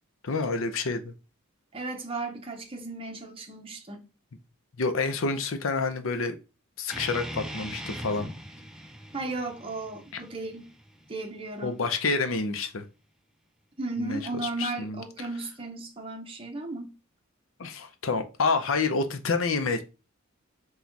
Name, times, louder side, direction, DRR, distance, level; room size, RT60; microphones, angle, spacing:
voice 1, 0.2-1.1 4.8-6.4 6.8-8.3 11.6-12.8 14.0-15.0 17.6-19.8, left 4 dB, 70° left, 0.6 m, -28 dB
voice 2, 1.7-4.0 9.1-10.7 11.1-11.8 13.8-16.9, right 2 dB, 25° right, 0.8 m, -35 dB
sound 1, 6.9-12.0, equal, 5° right, 0.4 m, -40 dB
4.0 x 2.3 x 4.5 m
head